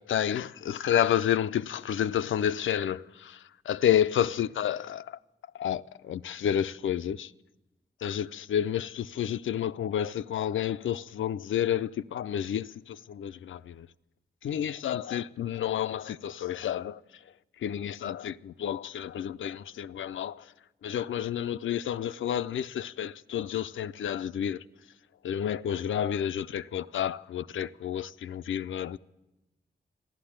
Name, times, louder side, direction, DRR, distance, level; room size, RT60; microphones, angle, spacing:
voice 1, 0.0-5.2 5.6-7.3 8.0-13.9 14.4-17.0 17.6-20.5 20.8-24.6 25.2-29.0, left 10 dB, 80° left, 0.4 m, -30 dB
14.0 x 11.5 x 8.7 m
cardioid pair, 50°, 20 cm